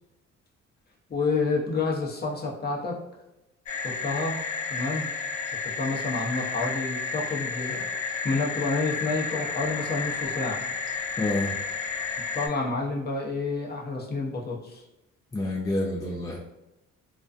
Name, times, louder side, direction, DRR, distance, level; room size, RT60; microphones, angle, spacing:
voice 1, 1.1-3.0 3.8-4.4 4.7-5.1 5.8-7.9 8.2-10.6 12.3-14.8, left 3 dB, 35° left, -3 dB, 0.7 m, -29 dB
sound 1, 3.7-12.5, left 5 dB, 70° left, 0.6 m, -32 dB
voice 2, 11.2-11.5 15.3-16.4, left 1 dB, 10° left, -2 dB, 0.3 m, -28 dB
2.5 x 2.2 x 2.4 m, 0.97 s
cardioid pair, 90°, 30 cm